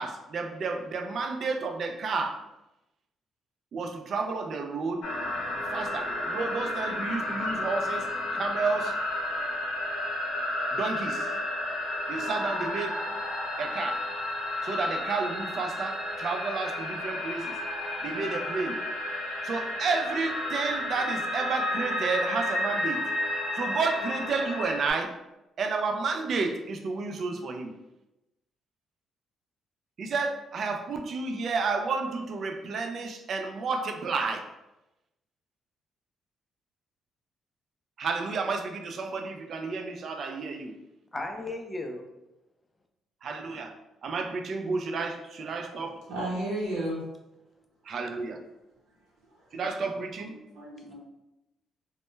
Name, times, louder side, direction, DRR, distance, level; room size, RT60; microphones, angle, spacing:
voice 1, 0.0-2.4 3.7-5.1 5.7-8.1 8.3-9.0 10.7-11.3 12.1-13.0 13.6-14.1 14.6-17.6 18.0-18.8 19.4-23.0 23.5-25.2 25.6-27.7 30.0-34.5 38.0-40.7 43.2-43.7 44.0-46.0 47.8-48.4 49.5-50.4, right 4 dB, 60° right, 5 dB, 0.3 m, -31 dB
sound 1, 5.0-24.9, left 1 dB, 80° left, 0.6 m, -32 dB
voice 2, 41.1-42.0 50.9-51.0, left 2 dB, 20° left, 3 dB, 0.4 m, -35 dB
voice 3, 45.8-47.0 49.2-49.5 50.3-50.9, right 1 dB, 90° right, -5 dB, 0.8 m, -34 dB
2.1 x 2.1 x 3.0 m, 0.95 s
cardioid pair, 90°, 0 cm